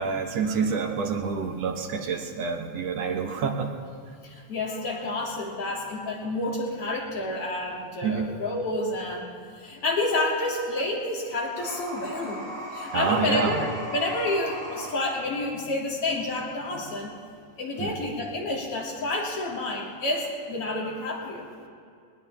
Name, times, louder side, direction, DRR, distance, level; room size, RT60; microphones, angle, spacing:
voice 1, 0.0-3.7 8.0-8.3 12.9-13.6 17.8-17.9, right 5 dB, 65° right, 3 dB, 1.9 m, -27 dB
voice 2, 4.2-9.3 9.5-12.4 12.7-17.1 17.6-21.4, left 2 dB, 45° left, -3 dB, 3.3 m, -29 dB
sound 1, 11.5-15.0, right 1 dB, 15° right, 3.9 m, -37 dB
20.5 x 20.0 x 3.4 m, 2.3 s
omnidirectional pair, 3.6 m